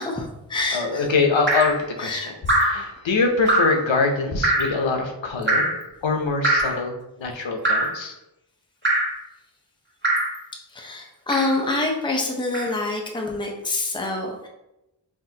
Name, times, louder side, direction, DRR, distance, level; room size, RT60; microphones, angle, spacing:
voice 1, 0.0-1.1 2.0-2.3 10.7-14.5, left 2 dB, 10° left, 1 dB, 0.6 m, -26 dB
voice 2, 0.7-2.3 2.6-5.7 6.0-8.2, left 4 dB, 85° left, 3 dB, 0.8 m, -24 dB
Drip, 1.5-1.8 2.5-2.8 3.5-3.8 4.4-4.8 5.5-5.8 6.4-6.8 7.6-8.0 8.8-9.2 10.0-10.4 11.3-11.6 12.5-12.7, right 1 dB, 25° right, 1.2 m, -22 dB
5.9 x 2.5 x 2.8 m, 0.90 s
wide cardioid pair, 80°, 44 cm